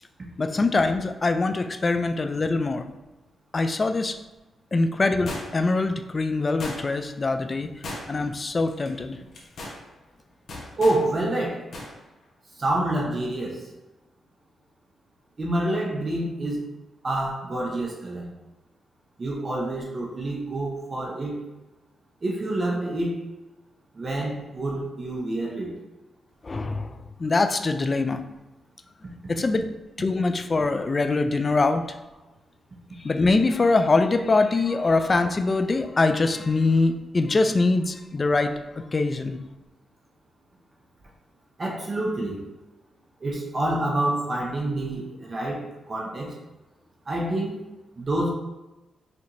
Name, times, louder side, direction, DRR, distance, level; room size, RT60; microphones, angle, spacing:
voice 1, 0.4-2.8 3.5-4.2 4.7-7.7 8.1-9.2 26.4-28.2 29.3-29.7 30.0-31.8 33.0-39.4, left 3 dB, 35° left, 8 dB, 0.3 m, -23 dB
sound 1, 5.3-5.8 6.6-7.1 7.8-8.3 8.7-8.9 9.3-9.8 10.5-11.0 11.7-11.9 12.2-12.3, left 2 dB, 65° left, 1.0 m, -36 dB
voice 2, 10.8-11.6 12.6-13.7 15.4-16.6 17.0-18.3 19.2-21.4 22.2-23.2 24.0-25.7 41.6-42.4 43.2-46.3 47.1-47.6 48.0-48.3, right 1 dB, 40° right, -2 dB, 0.7 m, -27 dB
5.1 x 2.8 x 2.6 m, 1.0 s
cardioid pair, 80°, 0 cm